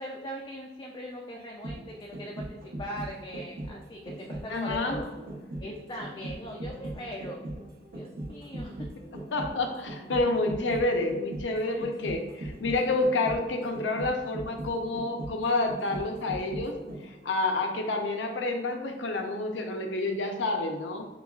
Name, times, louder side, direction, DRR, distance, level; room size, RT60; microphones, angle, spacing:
voice 1, 0.0-5.1 5.6-7.4 7.9-8.9 11.6-12.1, equal, 25° left, -1 dB, 0.4 m, -40 dB
sound 1, 1.4-17.3 17.6-17.7, right 1 dB, 50° right, 0.7 m, -39 dB
voice 2, 4.5-5.0 9.3-16.8 17.0-21.0, left 2 dB, 75° left, 4 dB, 0.6 m, -29 dB
6.8 x 2.3 x 2.3 m, 1.2 s
head